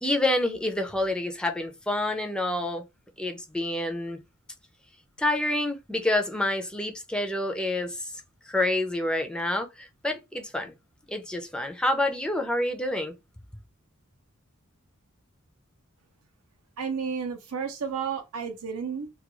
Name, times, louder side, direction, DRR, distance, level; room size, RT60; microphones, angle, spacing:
voice 1, 0.0-2.8 3.2-4.2 5.2-8.1 8.5-10.7 11.1-13.1, left 1 dB, 5° left, 0.4 m, -28 dB
voice 2, 16.8-19.1, right 6 dB, 90° right, 0.5 m, -32 dB
2.3 x 2.2 x 2.9 m
head